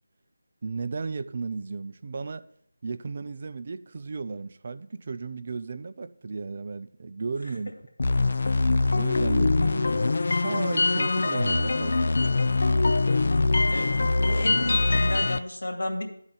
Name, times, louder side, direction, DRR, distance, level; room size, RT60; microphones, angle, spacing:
voice 1, 0.6-2.5 2.8-7.7 8.1-8.2 8.9-12.6, right 4 dB, 35° right, 0.4 m, -35 dB
sound 1, 8.0-15.4, left 3 dB, 50° left, 0.4 m, -23 dB
voice 2, 14.3-16.0, left 1 dB, 70° left, 2.3 m, -31 dB
11.5 x 4.0 x 7.2 m
figure-of-eight pair, 170°, 0 cm